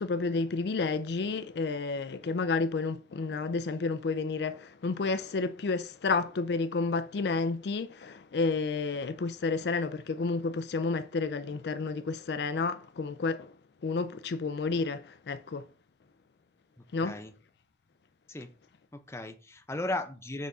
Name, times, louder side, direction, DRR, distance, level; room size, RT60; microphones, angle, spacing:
voice 1, 0.0-13.5 13.8-15.7 16.9-17.2, left 4 dB, 65° left, 0.4 m, -31 dB
voice 2, 16.8-17.3 18.3-18.5 18.9-20.5, left 2 dB, 15° left, 0.6 m, -36 dB
6.2 x 3.6 x 5.4 m
head